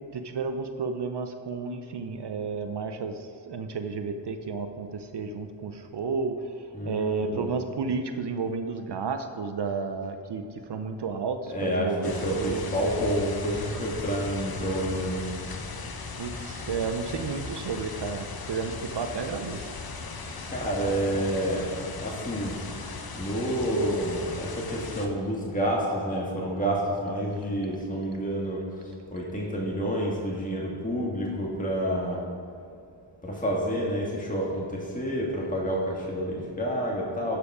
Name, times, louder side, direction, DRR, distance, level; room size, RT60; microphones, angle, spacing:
voice 1, 0.0-3.2 3.5-6.4 6.8-10.4 10.7-12.7 16.2-19.7, right 5 dB, 55° right, 7 dB, 0.7 m, -32 dB
voice 2, 6.7-7.5 11.5-15.2 20.5-22.5 23.1-32.2 33.2-37.4, equal, 15° left, -3 dB, 1.7 m, -29 dB
sound 1, 12.0-25.1, left 4 dB, 45° left, 1.0 m, -38 dB
11.5 x 4.9 x 4.9 m, 2.4 s
cardioid pair, 65°, 49 cm